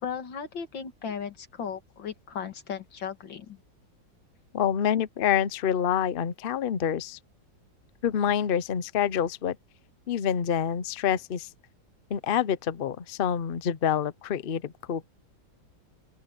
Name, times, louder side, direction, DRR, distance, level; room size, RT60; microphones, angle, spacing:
voice 1, 0.0-3.6, left 7 dB, 80° left, 2.5 m, -36 dB
voice 2, 4.5-7.2 8.0-9.6 10.1-11.5 12.1-15.1, left 8 dB, 65° left, 0.5 m, -27 dB
open air
omnidirectional pair, 2.0 m